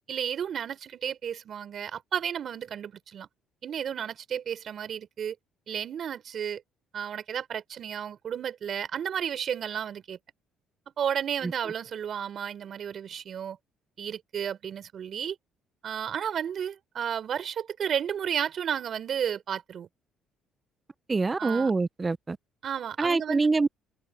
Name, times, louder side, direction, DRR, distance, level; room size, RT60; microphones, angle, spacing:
voice 1, 0.1-3.3 3.6-5.4 5.7-6.6 6.9-10.2 11.0-13.6 14.0-15.4 15.8-19.9 21.4-21.7 22.6-23.5, right 8 dB, 55° right, 4.5 m, -32 dB
voice 2, 21.1-22.4 23.0-23.8, right 3 dB, 25° right, 0.8 m, -25 dB
cardioid pair, 95°, 0 cm